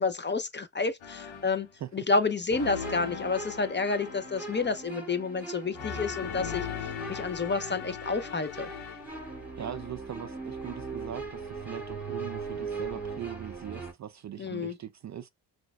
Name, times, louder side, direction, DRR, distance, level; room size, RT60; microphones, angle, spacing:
voice 1, 0.0-1.7 1.9-6.7 7.1-8.7 14.4-14.8, left 4 dB, 25° left, 0.7 m, -29 dB
sound 1, 1.0-1.7 2.5-5.0 5.7-9.3, left 7 dB, 65° left, 1.1 m, -39 dB
sound 2, 2.5-13.9, right 4 dB, 5° right, 2.1 m, -40 dB
voice 2, 9.6-15.3, right 10 dB, 35° right, 0.5 m, -41 dB
5.8 x 2.5 x 2.3 m
hypercardioid pair, 40°, 48 cm